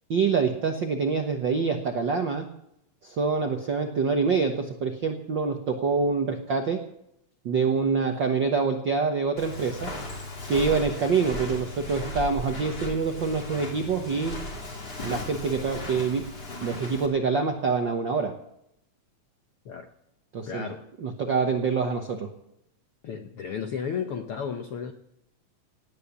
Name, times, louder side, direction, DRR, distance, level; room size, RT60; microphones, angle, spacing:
voice 1, 0.1-2.5 3.0-6.8 7.4-9.9 10.5-14.4 15.0-16.3 16.6-18.3 20.3-20.7 21.0-22.3, right 5 dB, 70° right, 5 dB, 1.1 m, -26 dB
Walk footsteps, 9.4-17.1, left 1 dB, 30° left, 3.3 m, -36 dB
voice 2, 20.4-20.9 23.0-24.9, left 7 dB, 75° left, 6 dB, 1.3 m, -33 dB
18.5 x 9.1 x 8.4 m, 0.79 s
omnidirectional pair, 3.8 m